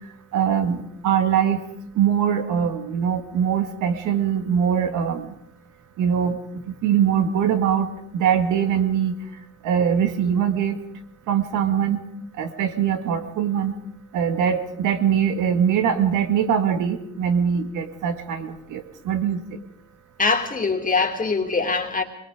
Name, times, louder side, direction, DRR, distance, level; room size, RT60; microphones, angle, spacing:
voice 1, 0.3-1.6 2.0-5.3 6.0-6.4 6.8-7.9 8.1-9.2 9.6-10.8 11.3-12.0 12.4-13.7 14.1-19.4, right 8 dB, 90° right, 7 dB, 2.1 m, -22 dB
voice 2, 20.2-22.0, left 4 dB, 25° left, 3 dB, 2.6 m, -22 dB
24.0 x 21.5 x 5.1 m, 0.72 s
cardioid pair, 90°, 30 cm